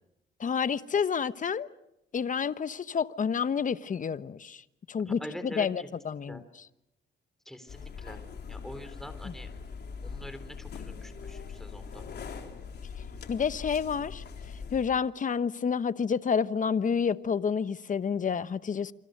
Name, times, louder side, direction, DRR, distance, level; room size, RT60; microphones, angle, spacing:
voice 1, 0.4-1.7 2.1-4.6 4.9-5.2 5.6-6.4 9.2-9.3 13.3-14.2 14.7-18.9, left 6 dB, 40° left, 1.1 m, -29 dB
voice 2, 5.1-6.4 7.5-8.2 8.5-9.5 10.0-12.0, left 1 dB, ahead, 3.8 m, -44 dB
sound 1, 7.7-14.8, left 5 dB, 55° left, 3.7 m, -42 dB
28.0 x 26.0 x 6.7 m
cardioid pair, 90°, 20 cm